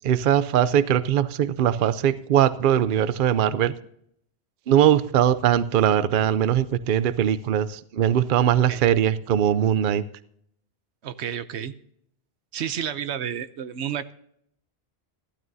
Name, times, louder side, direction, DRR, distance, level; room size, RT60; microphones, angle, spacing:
voice 1, 0.0-3.7 4.7-10.0, right 10 dB, 55° right, 15 dB, 0.7 m, -21 dB
voice 2, 11.0-11.7 12.5-14.1, right 9 dB, 90° right, 13 dB, 1.0 m, -31 dB
15.0 x 12.5 x 2.7 m, 0.69 s
omnidirectional pair, 1.1 m